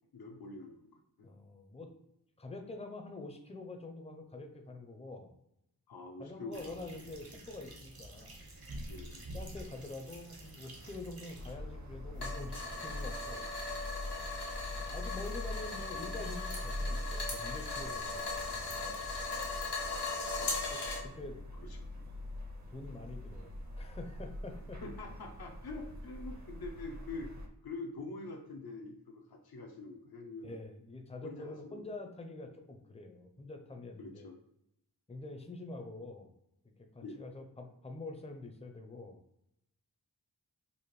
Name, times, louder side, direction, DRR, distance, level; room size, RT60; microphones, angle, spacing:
voice 1, 0.1-1.3 5.9-6.6 6.9-7.0 8.9-9.3 20.3-20.6 21.5-22.0 24.8-27.3 27.6-30.6 31.2-31.9 34.0-34.4 37.0-37.2, left 3 dB, 70° left, 2 dB, 0.6 m, -45 dB
voice 2, 1.2-1.9 2.4-5.3 6.2-8.4 9.2-13.5 14.7-19.0 20.7-21.4 22.7-24.8 30.4-34.3 35.1-36.3 36.9-39.2, left 2 dB, 15° left, 4 dB, 0.5 m, -46 dB
sound 1, 6.5-11.5, right 1 dB, 65° right, 1.0 m, -48 dB
sound 2, 11.3-27.5, left 1 dB, 45° right, 0.7 m, -43 dB
sound 3, 12.2-21.0, left 3 dB, 90° left, 1.0 m, -39 dB
4.1 x 2.5 x 3.1 m, 0.82 s
wide cardioid pair, 55°, 39 cm